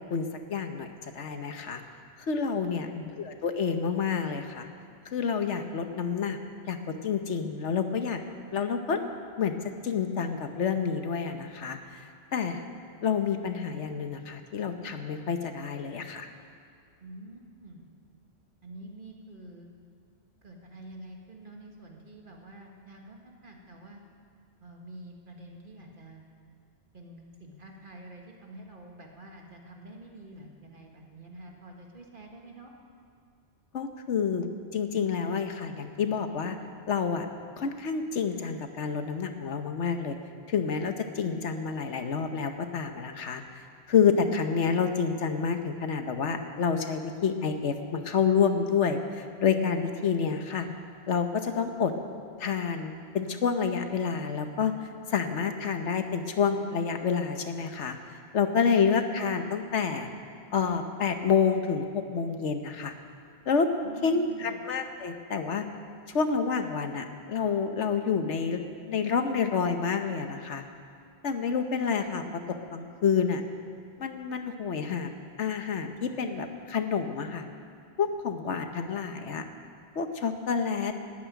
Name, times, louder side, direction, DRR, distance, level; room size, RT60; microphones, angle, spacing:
voice 1, 0.1-0.9 1.1-1.8 2.3-4.7 5.1-6.8 7.0-8.2 8.5-9.0 9.4-9.5 9.8-12.0 12.3-12.6 13.0-16.3 33.7-34.4 34.7-36.6 36.9-37.3 37.6-40.2 40.5-43.4 43.9-50.7 51.1-51.9 52.4-58.0 58.3-60.1 60.5-62.9 63.5-63.7 64.0-65.6 66.1-68.6 68.9-70.6 71.2-72.2 72.7-73.4 74.0-75.1 75.4-77.4 78.0-79.4 80.0-80.9, left 6 dB, 70° left, 7 dB, 1.2 m, -28 dB
voice 2, 17.0-17.8 18.6-19.7 20.4-24.0 24.6-26.2 26.9-32.7 63.8-64.6, right 2 dB, 45° right, 0 dB, 1.8 m, -47 dB
13.0 x 9.5 x 9.4 m, 2.3 s
omnidirectional pair, 1.3 m